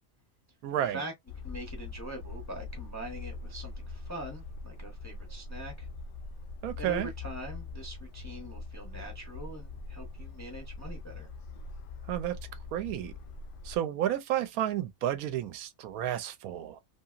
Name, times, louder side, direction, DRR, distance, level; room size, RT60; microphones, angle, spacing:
voice 1, 0.6-1.0 6.6-7.1 12.1-12.4 12.7-13.1 13.6-16.8, right 11 dB, 85° right, 1.0 m, -31 dB
sound 1, 1.3-13.8, left 3 dB, 80° left, 0.4 m, -42 dB
voice 2, 1.4-5.9 6.8-11.3, right 1 dB, 20° left, 0.5 m, -43 dB
2.8 x 2.6 x 2.4 m
omnidirectional pair, 1.5 m